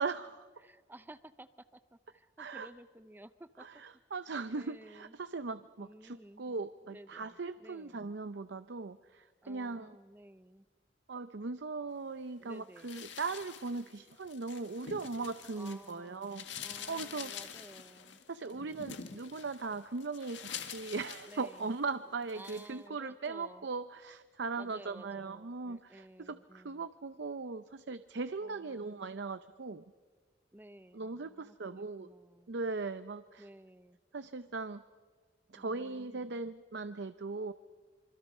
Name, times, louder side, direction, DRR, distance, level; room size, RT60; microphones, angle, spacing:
voice 1, 0.0-0.5 2.4-2.7 3.6-10.0 11.1-16.4 16.9-17.3 18.3-29.8 30.9-32.1 32.5-33.5 34.1-34.8 35.5-37.5, right 4 dB, 70° right, 12 dB, 0.7 m, -39 dB
voice 2, 0.6-3.8 4.5-5.2 5.8-6.4 6.9-8.0 9.4-10.7 12.4-12.9 15.6-18.8 21.3-21.7 22.3-23.7 24.5-26.9 28.4-29.0 30.5-32.5 33.4-34.0 35.5-36.4, right 1 dB, 10° right, 12 dB, 0.7 m, -54 dB
sound 1, 12.8-15.9 16.2-21.9 22.3-22.7, left 7 dB, 80° left, 1.9 m, -47 dB
26.5 x 25.0 x 5.5 m, 1.5 s
head